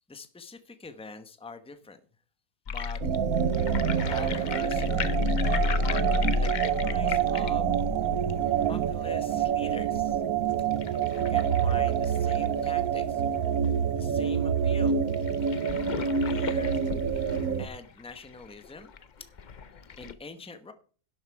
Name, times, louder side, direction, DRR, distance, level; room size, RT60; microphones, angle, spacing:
voice 1, 0.1-2.0 2.7-3.0 3.9-5.2 6.1-7.7 8.7-10.2 11.3-13.2 13.9-15.0 16.0-16.8 17.1-17.3 17.6-18.9 19.2-19.3 19.9-20.7, left 4 dB, 5° left, 9 dB, 0.7 m, -44 dB
sound 1, 2.7-13.7 14.1-14.2 14.4-14.5 15.1-20.1, left 4 dB, 50° left, 0.5 m, -33 dB
sound 2, 3.0-17.7, right 8 dB, 70° right, 1.2 m, -27 dB
11.5 x 8.0 x 4.7 m, 0.41 s
omnidirectional pair, 1.6 m